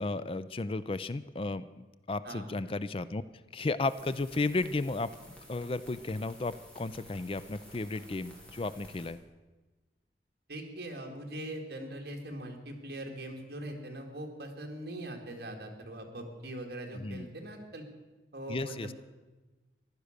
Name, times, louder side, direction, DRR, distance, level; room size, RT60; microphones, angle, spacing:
voice 1, 0.0-3.2 3.5-5.1 5.5-9.2 16.9-17.3 18.5-18.9, left 3 dB, 30° left, 14 dB, 0.4 m, -34 dB
sound 1, 3.8-9.1, equal, 5° left, 3.1 m, -53 dB
voice 2, 10.5-17.8 18.3-18.9, right 1 dB, 60° right, 2 dB, 2.4 m, -41 dB
15.0 x 11.5 x 6.6 m, 1.2 s
head